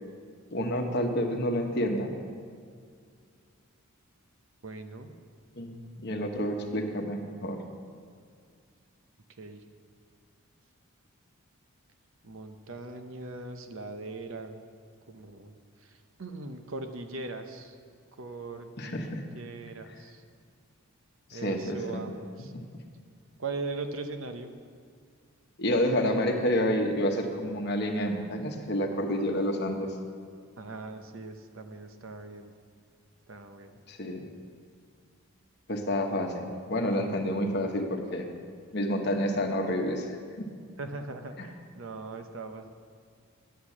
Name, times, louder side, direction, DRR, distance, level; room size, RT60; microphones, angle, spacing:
voice 1, 0.5-2.1 5.6-7.6 18.8-19.2 21.3-22.0 22.5-22.6 25.6-30.0 33.9-34.2 35.7-38.3 38.7-40.5 41.4-41.5, equal, 50° left, 3 dB, 1.1 m, -29 dB
voice 2, 4.6-5.1 9.4-9.6 12.2-14.6 15.1-15.5 15.8-17.8 18.2-20.2 21.3-22.5 23.4-24.5 30.6-32.5 33.3-33.8 40.8-42.7, right 3 dB, 65° right, 7 dB, 0.8 m, -40 dB
10.5 x 8.3 x 7.3 m, 2.1 s
head